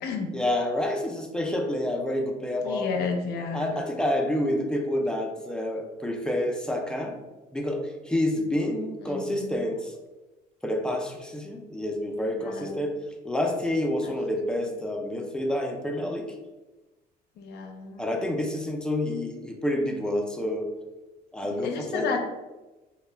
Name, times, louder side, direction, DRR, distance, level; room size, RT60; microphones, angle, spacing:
voice 1, 0.3-3.1 3.5-7.2 7.5-10.0 10.6-16.3 18.0-20.7 21.3-22.0, left 1 dB, 5° left, 1 dB, 0.4 m, -28 dB
voice 2, 2.6-3.8 9.0-9.7 12.4-12.8 14.0-14.2 17.4-18.1 21.4-22.2, left 5 dB, 75° left, 4 dB, 0.5 m, -32 dB
2.1 x 2.1 x 3.2 m, 1.1 s
cardioid pair, 110°, 17 cm